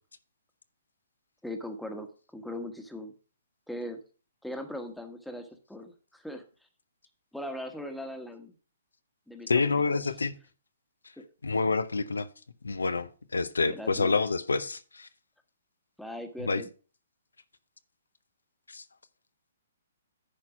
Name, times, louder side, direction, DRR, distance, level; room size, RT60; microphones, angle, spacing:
voice 1, 1.4-3.1 3.7-4.0 4.4-6.4 7.3-8.5 9.3-10.0 11.2-11.3 13.6-14.2 16.0-16.7, left 1 dB, ahead, 1.2 m, -39 dB
voice 2, 9.5-10.3 11.4-12.3 12.6-15.1 16.5-16.6 18.7-18.8, left 4 dB, 90° left, 0.7 m, -27 dB
10.0 x 4.5 x 5.9 m
hypercardioid pair, 135°, 0 cm